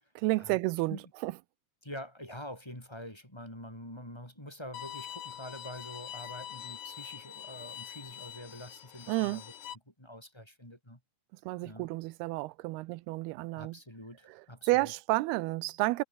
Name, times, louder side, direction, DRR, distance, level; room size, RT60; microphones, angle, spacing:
voice 1, 0.2-1.0 1.2-1.3 9.1-9.4 11.5-13.8 14.3-14.4 14.7-16.0, right 21 dB, 85° right, 2.6 m, -30 dB
voice 2, 1.8-9.5 9.9-11.0 11.6-11.9 13.5-14.9, left 1 dB, 5° left, 4.9 m, -46 dB
Bowed string instrument, 4.7-9.7, left 11 dB, 90° left, 4.1 m, -44 dB
omnidirectional pair, 4.6 m